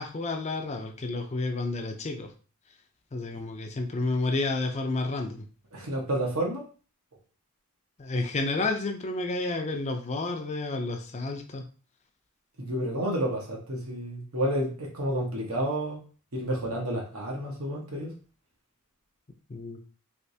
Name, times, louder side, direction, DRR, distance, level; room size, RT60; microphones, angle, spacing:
voice 1, 0.0-2.3 3.1-5.5 8.0-11.7 19.5-19.8, left 3 dB, 30° left, 4 dB, 0.5 m, -30 dB
voice 2, 5.7-6.6 12.6-16.0 16.3-18.1, right 1 dB, 80° right, -1 dB, 1.1 m, -30 dB
3.3 x 3.1 x 2.7 m, 0.37 s
head